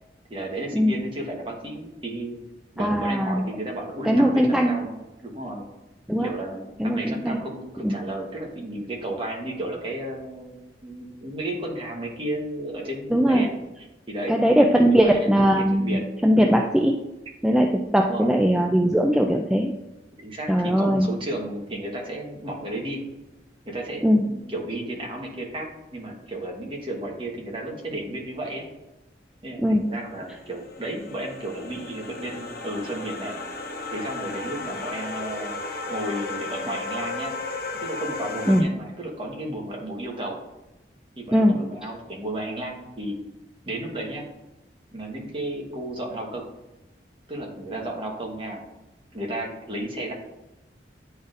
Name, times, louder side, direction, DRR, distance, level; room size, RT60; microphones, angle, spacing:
voice 1, 0.3-2.4 2.7-5.6 6.2-10.6 10.8-13.5 14.1-14.5 14.7-15.3 15.6-16.0 18.1-18.3 20.2-23.0 23.6-25.7 25.9-28.6 29.4-33.4 33.9-35.5 35.9-37.3 37.8-40.4 41.2-43.2 43.7-44.2 44.9-46.4 47.3-48.6 49.1-50.1, right 1 dB, 30° right, -1 dB, 1.2 m, -33 dB
voice 2, 2.8-3.4 4.1-4.7 6.1-6.3 6.8-7.4 7.8-8.0 13.1-13.4 14.3-17.0 17.4-19.7 20.5-21.1 24.0-24.2 29.6-29.9 38.5-38.7 41.3-41.6, equal, 5° right, 1 dB, 0.3 m, -20 dB
sound 1, 30.2-38.6, left 3 dB, 55° left, 0.7 m, -34 dB
9.5 x 4.0 x 2.5 m, 0.99 s
head